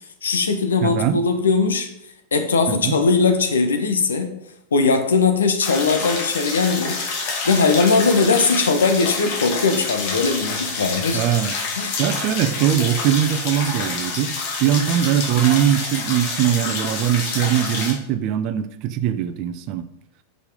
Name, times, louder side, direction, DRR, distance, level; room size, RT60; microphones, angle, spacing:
voice 1, 0.2-1.9 2.3-4.4 4.7-7.0 7.4-11.2 11.7-12.0, left 4 dB, 70° left, 7 dB, 1.1 m, -19 dB
voice 2, 0.8-1.2 2.7-2.9 11.1-11.5 12.0-14.3 14.6-19.8, right 10 dB, 40° right, 11 dB, 0.6 m, -21 dB
sound 1, 5.6-17.9, left 4 dB, 45° left, 2.0 m, -27 dB
7.2 x 5.6 x 5.0 m, 0.78 s
figure-of-eight pair, 90°, 0 cm